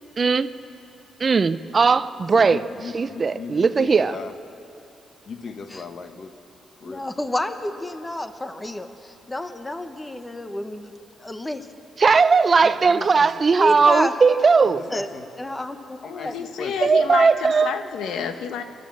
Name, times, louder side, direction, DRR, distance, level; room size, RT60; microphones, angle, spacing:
voice 1, 0.2-0.5 1.2-2.6 2.9-4.1 12.0-14.8 16.8-17.7, right 5 dB, 30° right, 0.5 m, -18 dB
voice 2, 2.3-4.4 5.2-6.3 6.8-7.1 12.6-13.3 13.6-13.9 14.6-15.3 16.0-16.8 17.1-17.2, left 4 dB, 45° left, 1.3 m, -37 dB
voice 3, 6.8-10.9 11.2-11.7 13.6-14.1 14.9-15.1 15.4-16.0 16.2-16.3, left 1 dB, 10° left, 0.9 m, -29 dB
voice 4, 16.0-18.6, left 7 dB, 80° left, 1.1 m, -29 dB
28.5 x 12.0 x 7.5 m
cardioid pair, 135°, 0 cm